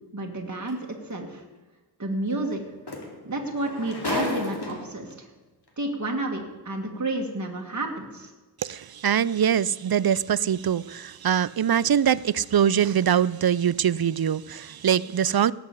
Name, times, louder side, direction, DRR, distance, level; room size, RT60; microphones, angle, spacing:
voice 1, 0.1-1.4 2.0-2.6 3.3-5.3 5.8-8.3, right 2 dB, 45° right, 1.7 m, -30 dB
sound 1, 0.7-0.8 2.5-2.6 2.9-5.1 6.0-6.1, left 2 dB, 80° left, 2.6 m, -32 dB
voice 2, 8.6-15.5, right 9 dB, 65° right, 0.5 m, -23 dB
18.0 x 6.0 x 8.2 m
wide cardioid pair, 55°, 39 cm